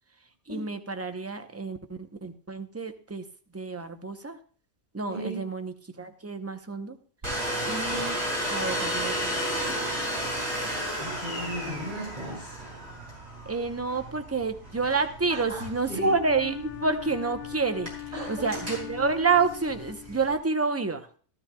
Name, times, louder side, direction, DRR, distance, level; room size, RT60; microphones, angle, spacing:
voice 1, 0.5-3.2 3.5-4.4 4.9-7.0 7.6-8.2 8.5-9.6 11.4-11.9 13.4-17.9 18.3-21.1, right 4 dB, 15° right, 7 dB, 0.7 m, -29 dB
voice 2, 5.1-5.4 11.0-12.6 15.3-15.6 15.9-16.1 18.1-18.4, right 1 dB, 35° right, -5 dB, 5.5 m, -36 dB
Domestic sounds home sounds, 7.2-20.3, equal, 65° right, 5.5 m, -34 dB
Wind instrument woodwind instrument, 15.8-20.6, left 16 dB, 60° left, 0.9 m, -41 dB
14.5 x 13.0 x 2.3 m, 0.43 s
omnidirectional pair, 1.2 m